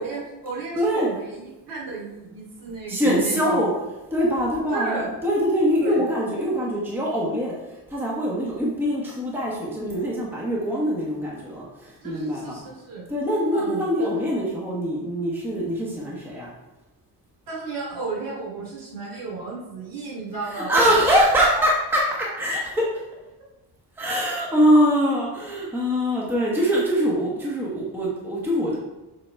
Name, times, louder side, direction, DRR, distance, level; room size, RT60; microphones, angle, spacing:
voice 1, 0.0-3.6 4.7-5.1 5.8-6.0 12.0-13.0 13.5-14.1 17.5-21.0 21.6-21.7, right 3 dB, 55° right, -3 dB, 2.5 m, -33 dB
voice 2, 0.7-1.1 2.9-3.7 4.1-7.5 7.9-12.6 13.1-16.5 20.4-22.0 22.4-22.8 24.0-28.8, equal, 5° right, -5 dB, 1.1 m, -23 dB
7.6 x 3.8 x 4.6 m, 1.0 s
cardioid pair, 175°, 40 cm